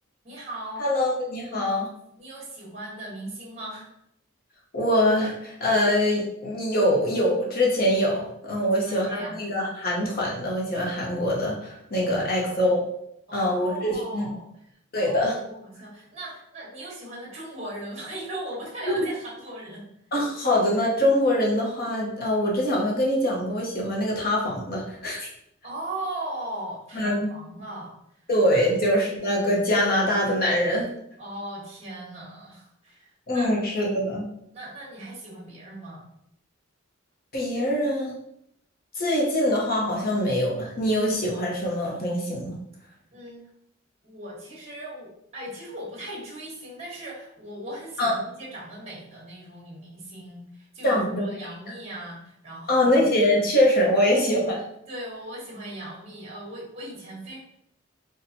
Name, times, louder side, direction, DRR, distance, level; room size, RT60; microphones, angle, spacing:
voice 1, 0.2-0.8 2.2-3.9 8.6-9.4 12.0-12.8 13.3-14.6 14.9-19.8 25.6-27.9 28.5-28.6 31.2-33.5 34.5-36.0 43.1-43.4 44.0-53.1 54.9-57.4, right 1 dB, 30° right, -5 dB, 1.2 m, -38 dB
voice 2, 0.8-1.9 4.7-12.8 13.3-14.3 14.9-15.4 18.9-19.0 20.1-25.3 26.9-27.3 28.3-30.9 33.3-34.3 37.3-38.1 38.9-42.5 48.0-48.1 50.8-51.3 52.7-54.6, left 1 dB, 50° left, -3 dB, 1.0 m, -23 dB
4.2 x 2.4 x 2.7 m, 0.74 s
head